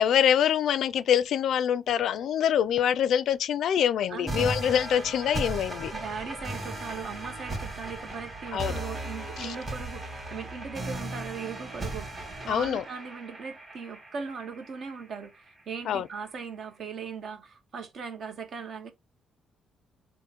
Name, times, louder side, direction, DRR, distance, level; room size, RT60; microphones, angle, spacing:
voice 1, 0.0-5.9 8.5-8.8 9.4-9.5 12.5-12.8 15.9-16.1, left 9 dB, 70° left, 0.3 m, -25 dB
voice 2, 4.1-4.5 5.9-18.9, right 5 dB, 55° right, 0.8 m, -39 dB
sound 1, 4.3-15.2, right 1 dB, 25° right, 1.9 m, -37 dB
3.6 x 2.1 x 4.2 m
cardioid pair, 110°, 0 cm